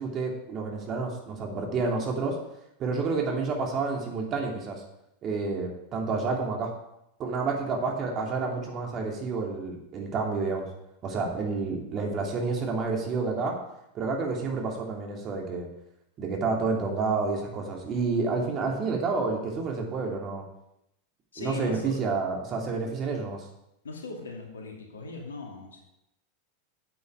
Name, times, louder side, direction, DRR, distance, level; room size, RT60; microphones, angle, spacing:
voice 1, 0.0-2.4 2.8-4.8 5.2-6.7 7.2-10.6 11.0-13.5 13.9-15.7 16.2-20.4 21.4-23.4, right 4 dB, 40° right, 1 dB, 3.0 m, -29 dB
voice 2, 21.3-22.0 23.8-25.8, left 3 dB, 80° left, 1 dB, 2.4 m, -39 dB
8.8 x 8.6 x 4.9 m, 0.84 s
hypercardioid pair, 90°, 0 cm